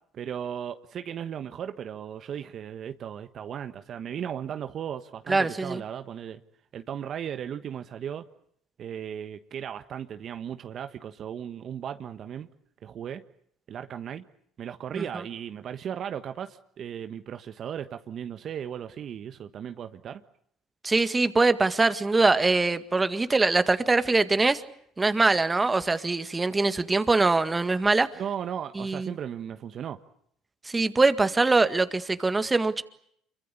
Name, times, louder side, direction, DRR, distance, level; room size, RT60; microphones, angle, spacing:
voice 1, 0.1-6.4 6.7-8.2 8.8-12.5 12.8-13.2 13.7-14.2 14.6-20.2 28.2-30.0, right 9 dB, 55° right, 1.3 m, -36 dB
voice 2, 5.3-5.8 14.9-15.1 20.8-24.6 25.0-28.1 28.8-29.2 30.7-32.8, right 3 dB, 20° right, 1.9 m, -23 dB
26.5 x 24.0 x 8.5 m
supercardioid pair, 70°, 0 cm